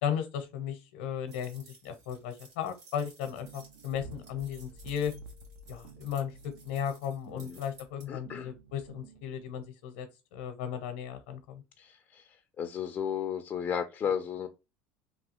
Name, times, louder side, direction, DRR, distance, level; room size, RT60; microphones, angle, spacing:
voice 1, 0.0-5.1 5.7-11.6, left 8 dB, 85° left, 0.6 m, -36 dB
sound 1, 1.3-8.1, right 3 dB, 60° right, 1.8 m, -56 dB
sound 2, 3.4-9.6, right 2 dB, 85° right, 0.6 m, -51 dB
voice 2, 8.1-8.5 11.8-12.2 12.6-14.5, left 8 dB, 25° left, 0.3 m, -34 dB
3.1 x 2.3 x 2.8 m
supercardioid pair, 135°, 6 cm